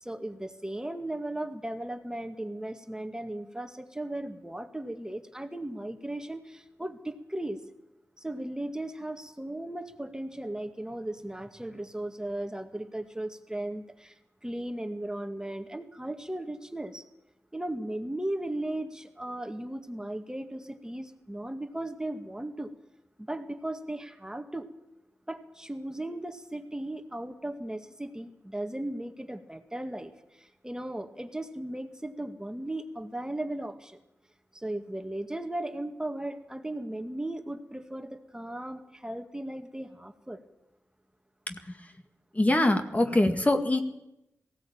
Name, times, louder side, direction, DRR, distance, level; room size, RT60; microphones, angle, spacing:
voice 1, 0.0-7.6 8.2-17.0 17.5-22.7 23.2-24.7 25.3-34.0 34.5-40.4, right 1 dB, 10° right, 6 dB, 2.0 m, -36 dB
voice 2, 42.3-43.8, left 1 dB, 25° left, 6 dB, 2.0 m, -23 dB
18.5 x 16.5 x 8.9 m, 0.89 s
cardioid pair, 50°, 6 cm